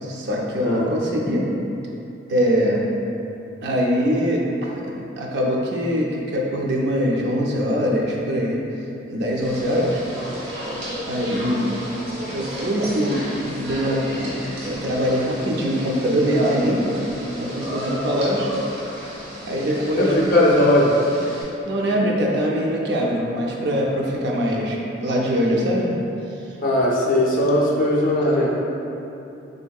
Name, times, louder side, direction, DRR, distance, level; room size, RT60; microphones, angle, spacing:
voice 1, 0.0-1.5 2.3-2.9 3.6-8.6 9.1-10.0 11.1-11.7 12.3-16.9 17.4-18.5 19.5-20.3 21.6-26.0, equal, 60° right, -2 dB, 0.4 m, -23 dB
sound 1, 9.4-21.4, equal, 80° right, 0.9 m, -33 dB
voice 2, 20.0-21.0 26.6-28.6, left 1 dB, 45° left, -4 dB, 0.5 m, -18 dB
3.4 x 2.7 x 2.3 m, 2.8 s
head